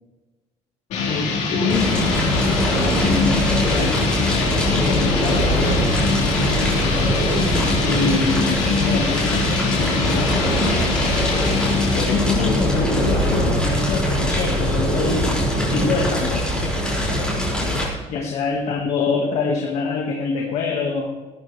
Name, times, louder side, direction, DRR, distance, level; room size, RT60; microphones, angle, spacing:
sound 1, 0.9-13.4, left 4 dB, 70° left, 4.5 m, -24 dB
voice 1, 1.0-4.0 4.4-5.8 6.3-7.2 7.8-10.7 11.9-15.3 15.7-16.5 17.0-17.3 18.1-21.2, left 4 dB, 55° left, 0 dB, 2.0 m, -26 dB
Fire, 1.7-17.9, equal, 5° left, 5.8 m, -21 dB
19.5 x 13.5 x 3.5 m, 1.2 s
cardioid pair, 175°, 13 cm